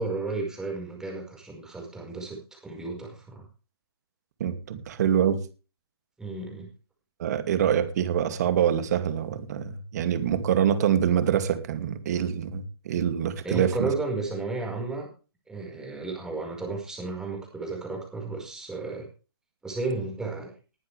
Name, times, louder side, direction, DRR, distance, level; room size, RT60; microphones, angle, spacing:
voice 1, 0.0-3.5 6.2-6.7 13.4-15.1 15.5-19.1 19.6-20.5, right 3 dB, 5° right, 5.0 m, -33 dB
voice 2, 4.4-5.4 7.2-13.9, right 9 dB, 45° right, 2.4 m, -25 dB
20.0 x 9.5 x 3.4 m
hypercardioid pair, 145°, 13 cm